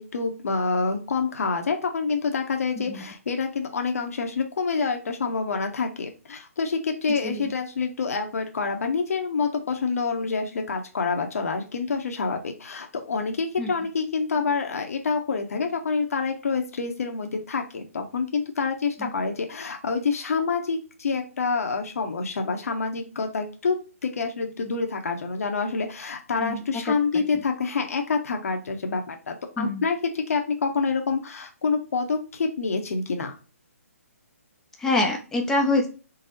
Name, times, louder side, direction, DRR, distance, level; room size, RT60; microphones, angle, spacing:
voice 1, 0.0-23.8 24.0-33.3, left 4 dB, 70° left, 4 dB, 0.8 m, -27 dB
voice 2, 34.8-35.9, left 2 dB, 5° left, 1 dB, 0.5 m, -25 dB
4.0 x 2.0 x 3.8 m, 0.34 s
hypercardioid pair, 160°, 8 cm